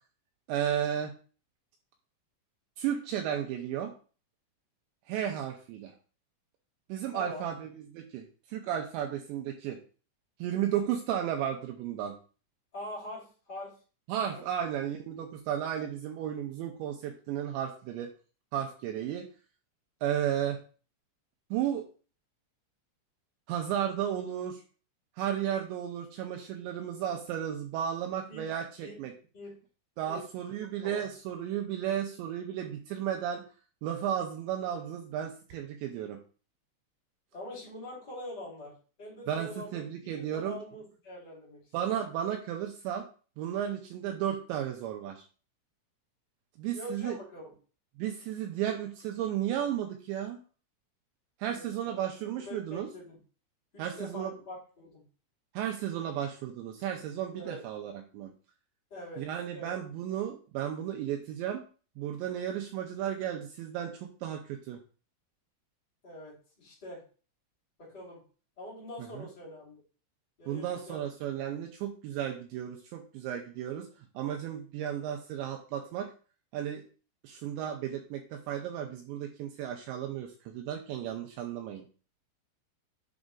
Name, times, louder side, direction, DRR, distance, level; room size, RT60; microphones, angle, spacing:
voice 1, 0.5-1.1 2.8-3.9 5.1-5.9 6.9-9.8 10.4-12.1 14.1-18.1 18.5-19.3 20.0-20.6 21.5-21.9 23.5-24.6 25.2-29.1 30.0-33.4 33.8-36.2 39.3-40.6 41.7-43.0 43.4-45.2 46.6-47.2 48.0-50.4 51.4-52.9 53.8-54.3 55.5-58.3 59.2-61.6 62.0-64.8 69.1-69.3 70.5-73.9 74.1-76.1 76.5-76.8 77.2-81.8, right 10 dB, 90° right, 3 dB, 2.6 m, -34 dB
voice 2, 7.1-7.4 12.7-13.7 14.3-14.4 28.3-28.4 28.8-29.0 29.3-29.5 30.1-30.2 30.8-31.1 37.3-38.7 39.0-41.6 41.9-42.0 46.7-47.5 51.5-52.0 52.4-53.2 53.7-55.0 57.3-57.6 58.9-59.2 59.5-59.8 66.0-67.0 67.8-68.2 68.6-69.8 70.4-71.0 71.4-71.5, left 1 dB, 25° left, -9 dB, 3.1 m, -44 dB
9.9 x 5.3 x 2.4 m, 0.37 s
omnidirectional pair, 5.9 m